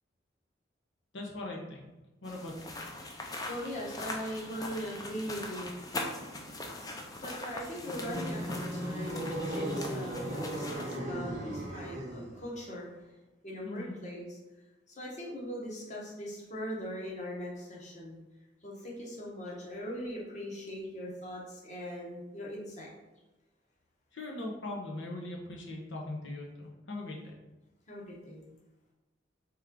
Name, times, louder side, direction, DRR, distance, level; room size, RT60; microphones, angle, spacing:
voice 1, 1.1-1.8 2.2-2.7 13.6-14.0 24.1-27.2, left 2 dB, 85° left, 0 dB, 0.9 m, -40 dB
sound 1, 2.2-11.0, left 2 dB, 20° left, 0.4 m, -41 dB
voice 2, 3.2-13.1 13.4-14.4 14.9-18.2 18.6-22.9 27.9-28.4, equal, 40° left, -3 dB, 1.0 m, -41 dB
sound 2, 7.7-12.4, right 1 dB, 40° right, 0.7 m, -36 dB
3.5 x 3.1 x 3.7 m, 1.1 s
head